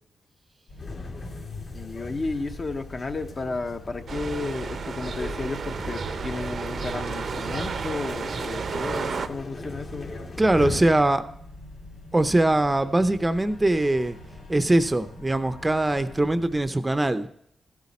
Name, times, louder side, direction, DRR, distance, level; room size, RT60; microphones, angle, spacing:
sound 1, 0.7-16.7, left 1 dB, 90° left, 3.5 m, -46 dB
sound 2, 0.8-11.3, left 3 dB, 65° left, 2.5 m, -39 dB
voice 1, 1.7-10.1, left 3 dB, 45° left, 7 dB, 0.8 m, -33 dB
sound 3, 4.1-9.3, right 5 dB, 60° right, 0.6 m, -32 dB
voice 2, 10.4-11.2 12.1-14.2 14.5-17.3, right 1 dB, 20° right, 11 dB, 0.5 m, -22 dB
13.5 x 8.3 x 4.2 m, 0.71 s
cardioid pair, 80°, 0 cm